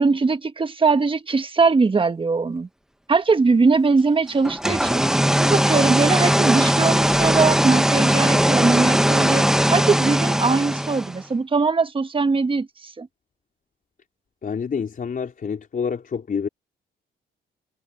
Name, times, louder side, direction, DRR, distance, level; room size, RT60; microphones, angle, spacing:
voice 1, 0.0-2.7 3.1-5.0 5.4-13.1, right 4 dB, 25° right, 1.4 m, -21 dB
sound 1, 4.4-11.2, equal, 5° right, 1.0 m, -19 dB
voice 2, 14.4-16.5, left 6 dB, 45° left, 4.4 m, -27 dB
cardioid pair, 90°, 20 cm